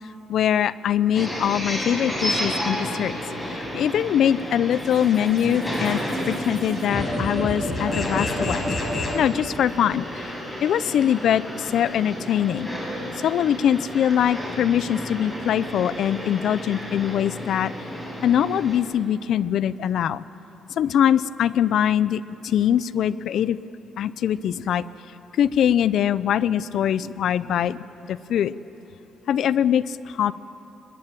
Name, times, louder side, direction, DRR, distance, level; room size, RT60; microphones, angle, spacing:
voice 1, 0.3-3.2 3.5-8.7 9.1-10.3 10.6-12.7 13.1-17.7 18.2-20.2 20.8-23.6 24.0-24.9 25.3-27.8 28.1-28.5 29.3-30.3, left 10 dB, 70° left, 17 dB, 0.6 m, -22 dB
sound 1, 1.1-18.8, equal, 10° left, 8.0 m, -32 dB
sound 2, 3.8-9.2, left 1 dB, 45° left, 5.2 m, -31 dB
23.5 x 20.0 x 9.2 m, 2.9 s
cardioid pair, 90°, 0 cm